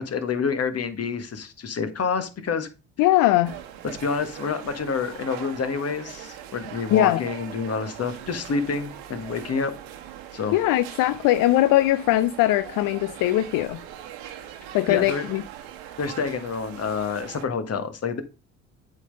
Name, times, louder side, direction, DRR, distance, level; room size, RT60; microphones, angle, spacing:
voice 1, 0.0-2.7 4.0-9.7 10.3-10.6 14.9-15.3 16.0-18.2, left 5 dB, 40° left, 1.4 m, -28 dB
voice 2, 3.0-3.5 6.9-7.2 10.5-13.8 14.7-15.4, left 15 dB, 60° left, 0.5 m, -20 dB
sound 1, 3.4-17.4, right 11 dB, 75° right, 1.2 m, -41 dB
8.2 x 3.9 x 5.1 m
hypercardioid pair, 60°, 39 cm